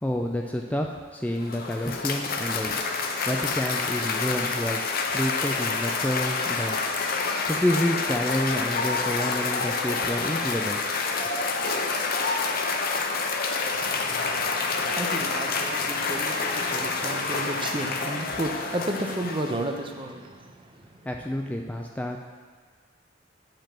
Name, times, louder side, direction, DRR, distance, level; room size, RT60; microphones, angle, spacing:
voice 1, 0.0-2.8 3.3-4.8 5.1-6.8 7.5-10.8 21.0-22.2, left 1 dB, 5° left, 1 dB, 0.4 m, -29 dB
Cheering / Applause, 1.2-19.8, left 4 dB, 50° left, 0.7 m, -28 dB
voice 2, 13.6-21.1, right 1 dB, 25° right, 4 dB, 0.7 m, -33 dB
7.4 x 5.2 x 5.8 m, 1.5 s
head